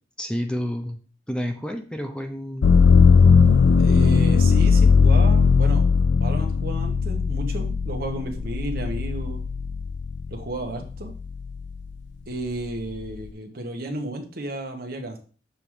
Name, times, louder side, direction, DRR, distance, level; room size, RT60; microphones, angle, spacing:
voice 1, 0.2-1.0 1.3-2.8, equal, 5° left, 5 dB, 0.6 m, -30 dB
sound 1, 2.6-10.4 10.9-11.7, left 5 dB, 75° left, 0.4 m, -18 dB
voice 2, 3.8-5.9 6.1-9.4 10.3-11.1 12.3-15.2, right 2 dB, 60° right, 4 dB, 1.3 m, -33 dB
6.8 x 3.7 x 4.7 m, 0.39 s
head